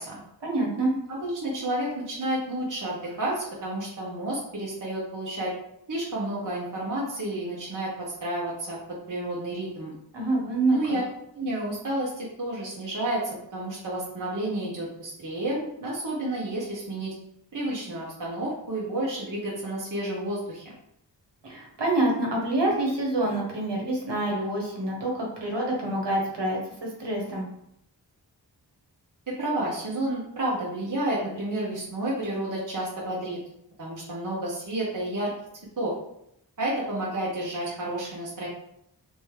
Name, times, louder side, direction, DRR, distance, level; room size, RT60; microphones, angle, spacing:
voice 1, 0.4-0.9 10.1-11.0 21.4-27.4, right 2 dB, 80° right, -2 dB, 1.3 m, -27 dB
voice 2, 1.1-5.5 5.9-8.8 9.1-9.9 10.7-11.0 11.3-17.1 17.5-20.7 29.3-33.4 33.8-35.3 35.8-35.9 36.6-38.5, right 1 dB, 50° right, -6 dB, 1.1 m, -30 dB
3.5 x 3.0 x 3.3 m, 0.75 s
wide cardioid pair, 70°, 41 cm